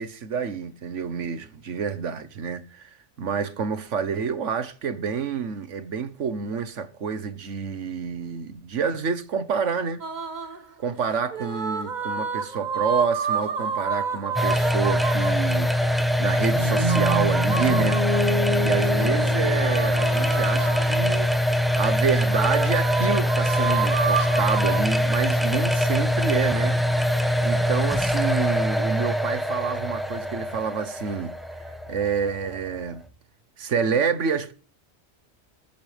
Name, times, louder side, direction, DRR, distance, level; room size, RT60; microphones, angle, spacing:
voice 1, 0.0-2.9 3.2-10.0 10.8-18.3 18.6-21.3 21.8-27.2 27.4-31.3 31.9-33.0 33.6-34.5, right 6 dB, 90° right, 1.5 m, -28 dB
sound 1, 10.0-10.6 11.3-15.5 16.8-18.4 19.5-21.2 22.3-24.8, right 6 dB, 40° right, 1.2 m, -29 dB
sound 2, 14.3-33.1, left 1 dB, ahead, 1.0 m, -23 dB
sound 3, 16.5-20.6, right 1 dB, 25° right, 2.5 m, -28 dB
20.5 x 8.7 x 3.4 m
omnidirectional pair, 1.2 m